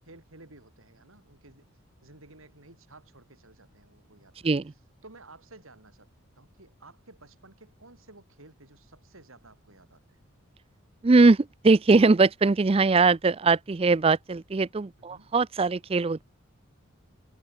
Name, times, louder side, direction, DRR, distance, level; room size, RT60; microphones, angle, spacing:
voice 1, 0.1-1.7 2.0-4.4 5.0-6.1 6.4-10.2 15.1-15.3, right 2 dB, 80° right, 5.1 m, -53 dB
voice 2, 11.0-16.2, right 3 dB, 25° right, 0.4 m, -21 dB
head